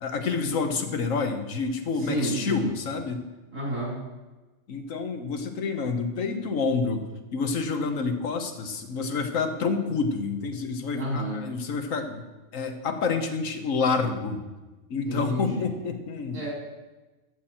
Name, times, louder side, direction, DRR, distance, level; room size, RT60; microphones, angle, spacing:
voice 1, 0.0-3.2 4.7-7.1 7.3-12.2 12.5-14.4 14.9-16.4, left 4 dB, 90° left, 6 dB, 1.5 m, -28 dB
voice 2, 2.0-2.7 3.5-4.0 10.9-11.4 15.0-15.6 16.3-16.5, right 1 dB, 80° right, -4 dB, 3.6 m, -30 dB
13.5 x 7.5 x 4.4 m, 1.2 s
omnidirectional pair, 1.3 m